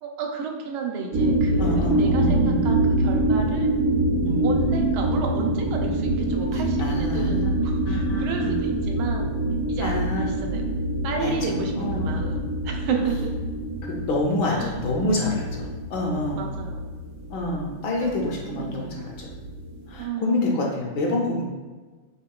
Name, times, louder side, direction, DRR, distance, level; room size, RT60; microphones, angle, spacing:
voice 1, 0.0-3.7 4.4-9.4 9.7-10.6 11.0-13.3 14.5-14.7 16.4-16.9 18.0-19.1 20.0-20.6, right 5 dB, 90° right, 2 dB, 1.5 m, -32 dB
sound 1, 1.1-20.0, right 1 dB, 70° right, 1.1 m, -25 dB
voice 2, 1.6-2.6 4.2-4.5 6.8-8.5 9.8-10.3 11.2-12.1 14.1-16.5 17.3-19.3 19.9-21.4, left 2 dB, 70° left, -1 dB, 1.2 m, -27 dB
6.4 x 2.9 x 2.3 m, 1.3 s
omnidirectional pair, 2.2 m